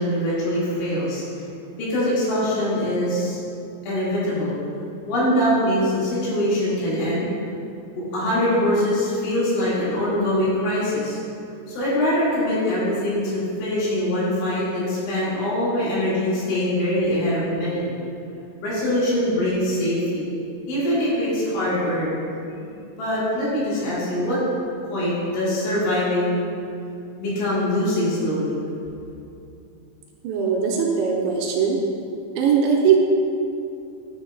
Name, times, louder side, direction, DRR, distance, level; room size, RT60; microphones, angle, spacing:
voice 1, 0.0-1.4 1.8-3.4 3.8-4.6 5.1-7.3 8.0-11.2 11.7-17.8 18.6-20.3 20.7-22.2 23.0-24.4 24.9-26.4 27.2-28.6, left 1 dB, 80° left, -9 dB, 4.4 m, -23 dB
voice 2, 30.2-31.8 32.4-33.0, right 7 dB, 85° right, -1 dB, 2.7 m, -20 dB
10.0 x 7.6 x 2.3 m, 2.6 s
omnidirectional pair, 5.5 m